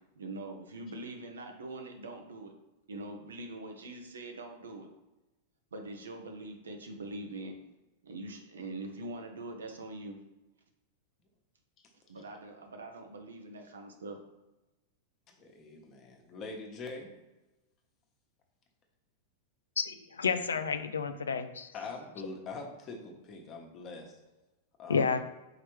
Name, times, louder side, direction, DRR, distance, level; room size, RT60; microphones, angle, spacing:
voice 1, 0.2-2.5 2.9-4.9 5.7-7.5 8.0-10.2 12.1-14.2, right 2 dB, 85° right, 4 dB, 0.7 m, -43 dB
voice 2, 15.3-17.1 21.7-24.2 24.8-25.2, left 3 dB, 35° left, 1 dB, 1.1 m, -43 dB
voice 3, 19.8-21.7 24.9-25.2, left 5 dB, 85° left, 10 dB, 0.3 m, -30 dB
4.6 x 3.3 x 3.2 m, 1.0 s
hypercardioid pair, 105°, 0 cm